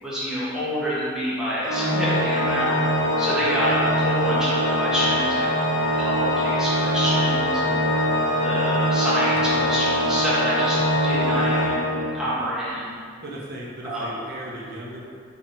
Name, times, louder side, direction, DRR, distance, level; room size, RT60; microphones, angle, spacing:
voice 1, 0.0-2.8 3.2-5.5 6.0-7.9 8.4-11.8 12.1-13.0 13.8-14.1, equal, 5° right, -11 dB, 1.4 m, -27 dB
Organ, 1.6-12.5, equal, 60° left, 0.9 m, -23 dB
Acoustic guitar, 9.4-13.8 14.4-14.6, left 1 dB, 40° left, 0.4 m, -40 dB
voice 2, 13.2-15.1, right 1 dB, 55° right, -4 dB, 1.0 m, -37 dB
6.1 x 3.7 x 4.4 m, 2.1 s
head